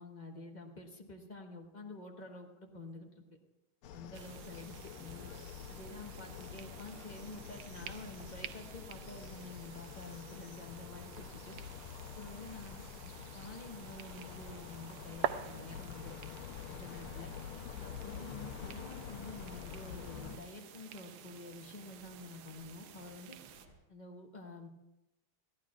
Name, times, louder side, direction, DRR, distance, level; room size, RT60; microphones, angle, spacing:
voice 1, 0.0-3.4 3.9-5.3 5.7-11.6 12.1-16.2 16.7-17.3 17.8-23.4 23.9-24.7, left 2 dB, 25° left, 2 dB, 1.1 m, -49 dB
sound 1, 3.8-20.4, left 8 dB, 85° left, 1.7 m, -47 dB
sound 2, 4.1-23.7, right 11 dB, 85° right, 1.5 m, -48 dB
sound 3, 13.0-23.7, left 1 dB, 45° left, 4.0 m, -60 dB
22.5 x 14.5 x 2.4 m, 0.93 s
omnidirectional pair, 2.3 m